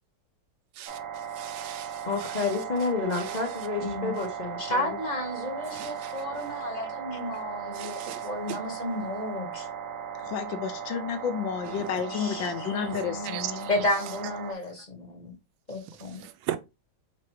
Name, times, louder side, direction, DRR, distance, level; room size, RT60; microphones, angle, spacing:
sound 1, 0.9-14.5, right 7 dB, 60° right, 0.9 m, -37 dB
voice 1, 1.4-2.4 3.1-3.4 5.7-6.1 7.8-8.6 13.3-13.5 16.2-16.6, right 11 dB, 80° right, 1.3 m, -37 dB
voice 2, 2.1-5.0, left 4 dB, 55° left, 0.4 m, -30 dB
voice 3, 3.8-4.2 4.6-9.7 12.0-12.5 12.8-13.4 13.7-15.4 15.7-16.2, left 1 dB, 30° left, 0.9 m, -32 dB
voice 4, 10.2-13.7, left 7 dB, 80° left, 1.4 m, -31 dB
4.2 x 3.7 x 3.1 m
omnidirectional pair, 2.1 m